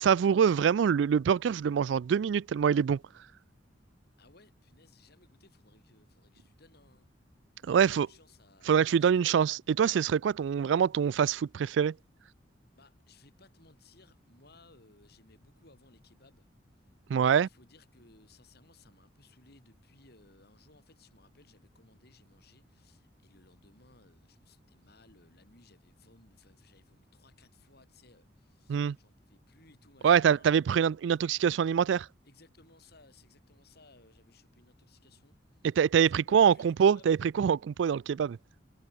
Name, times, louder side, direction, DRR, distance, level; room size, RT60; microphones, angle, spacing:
voice 1, 0.0-3.0 7.7-8.1 8.7-11.9 17.1-17.5 28.7-29.0 30.0-32.1 35.8-38.4, right 7 dB, 70° right, 0.3 m, -25 dB
voice 2, 4.2-7.1 7.6-8.7 9.0-9.3 12.7-16.5 16.7-30.5 32.2-35.8 36.1-37.1, left 3 dB, 55° left, 5.5 m, -61 dB
head